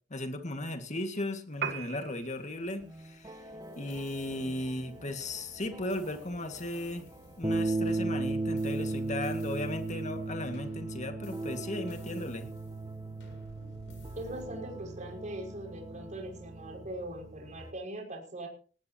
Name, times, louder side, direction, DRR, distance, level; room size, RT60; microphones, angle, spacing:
voice 1, 0.1-3.4 3.8-7.0 7.4-12.5, left 1 dB, 40° left, 6 dB, 2.1 m, -36 dB
Piano, 1.5-9.6, right 7 dB, 60° right, 1.7 m, -46 dB
guitar loop, 2.8-17.7, right 2 dB, 20° right, 1.2 m, -37 dB
sound 1, 3.6-14.4, left 1 dB, 70° left, 7.1 m, -55 dB
voice 2, 14.2-18.5, right 1 dB, 40° right, 1 dB, 6.0 m, -41 dB
19.0 x 19.0 x 3.0 m, 0.39 s
head